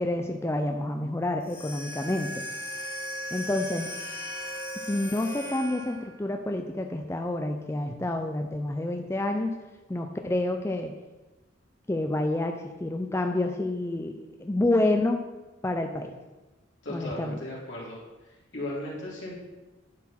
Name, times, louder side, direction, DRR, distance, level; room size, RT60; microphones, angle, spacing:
voice 1, 0.0-2.4 3.3-3.9 4.8-9.5 9.9-11.0 11.9-15.2 15.6-16.1 16.9-17.4, left 1 dB, 15° left, 4 dB, 0.4 m, -28 dB
sound 1, 1.4-6.2, equal, 50° left, 1.7 m, -37 dB
voice 2, 16.8-18.0 18.5-19.4, left 1 dB, 70° left, -4 dB, 2.9 m, -36 dB
10.5 x 4.5 x 5.8 m, 1.1 s
head